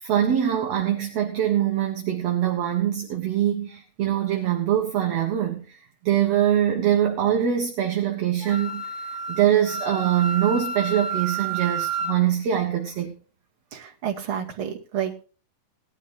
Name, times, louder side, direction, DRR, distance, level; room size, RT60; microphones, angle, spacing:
voice 1, 0.0-13.1, right 10 dB, 55° right, 2 dB, 2.2 m, -23 dB
Wind instrument woodwind instrument, 8.4-12.1, right 4 dB, 30° left, 0.8 m, -30 dB
voice 2, 13.7-15.2, right 9 dB, 40° right, -1 dB, 2.7 m, -30 dB
19.5 x 12.5 x 2.7 m, 0.37 s
omnidirectional pair, 4.1 m